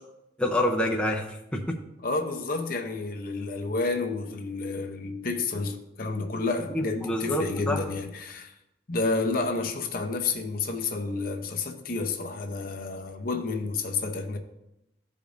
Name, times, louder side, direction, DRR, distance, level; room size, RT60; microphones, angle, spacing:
voice 1, 0.4-1.8 6.7-7.8, left 1 dB, 5° left, 0.7 m, -27 dB
voice 2, 2.0-8.5 8.9-14.4, left 3 dB, 50° left, 0.8 m, -30 dB
14.5 x 5.1 x 2.6 m
head